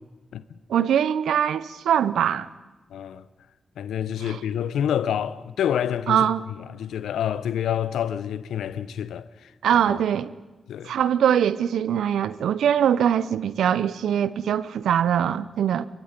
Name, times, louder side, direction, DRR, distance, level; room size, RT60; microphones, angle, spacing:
voice 1, 0.7-2.5 4.2-4.4 6.1-6.4 9.6-10.3 10.8-15.9, right 9 dB, 80° right, 0.7 m, -22 dB
voice 2, 2.9-3.2 3.8-6.3 6.7-10.0 10.7-10.9, left 9 dB, 85° left, 0.7 m, -28 dB
26.0 x 22.5 x 5.3 m
supercardioid pair, 40°, 0 cm